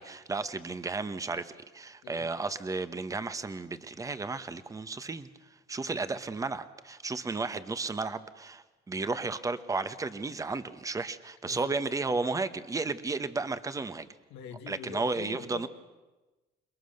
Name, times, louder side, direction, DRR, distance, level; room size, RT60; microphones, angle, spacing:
voice 1, 0.0-5.3 5.7-14.1 14.7-15.7, right 3 dB, 20° right, 11 dB, 1.2 m, -33 dB
voice 2, 11.4-11.8 14.3-15.7, left 8 dB, 85° left, 4 dB, 2.0 m, -44 dB
28.5 x 21.0 x 6.7 m, 1.2 s
cardioid pair, 110°, 17 cm